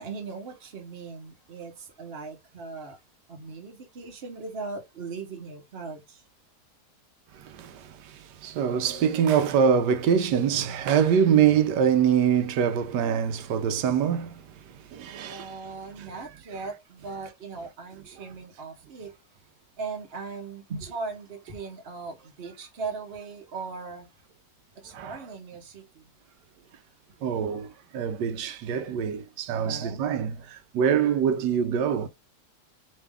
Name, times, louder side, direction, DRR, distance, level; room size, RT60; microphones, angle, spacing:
voice 1, 0.0-3.0 3.3-6.2 10.7-10.8 15.1-19.2 19.8-24.1 24.8-26.1 29.5-30.0, right 4 dB, 45° right, 1.1 m, -39 dB
voice 2, 7.3-15.6 16.0-16.1 24.9-25.2 27.2-32.1, right 8 dB, 90° right, 1.2 m, -25 dB
3.5 x 3.1 x 3.4 m
omnidirectional pair, 1.8 m